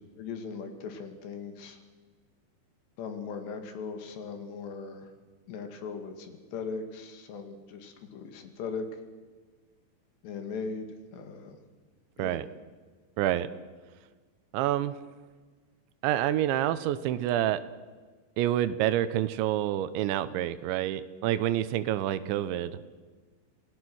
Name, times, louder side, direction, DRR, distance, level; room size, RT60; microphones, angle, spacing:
voice 1, 0.2-1.8 3.0-5.1 5.5-8.9 10.2-10.9 11.1-11.6 12.2-12.4, left 5 dB, 70° left, 6 dB, 4.1 m, -39 dB
voice 2, 13.2-13.5 14.5-14.9 16.0-17.6 18.4-22.8, right 12 dB, 90° right, 13 dB, 3.2 m, -28 dB
28.0 x 17.5 x 6.3 m, 1.4 s
omnidirectional pair, 5.2 m